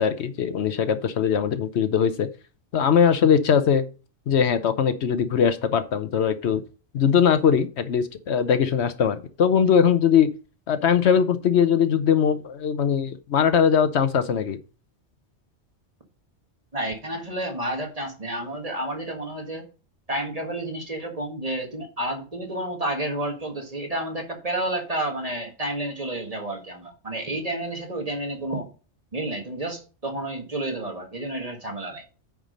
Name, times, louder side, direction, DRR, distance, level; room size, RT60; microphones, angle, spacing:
voice 1, 0.0-2.3 2.7-3.8 4.3-6.6 6.9-10.3 10.7-14.6, left 7 dB, 70° left, 11 dB, 1.0 m, -21 dB
voice 2, 16.7-19.7 20.1-28.7 29.1-32.0, right 1 dB, 30° right, 2 dB, 1.7 m, -30 dB
9.1 x 4.8 x 5.2 m, 0.35 s
omnidirectional pair, 1.2 m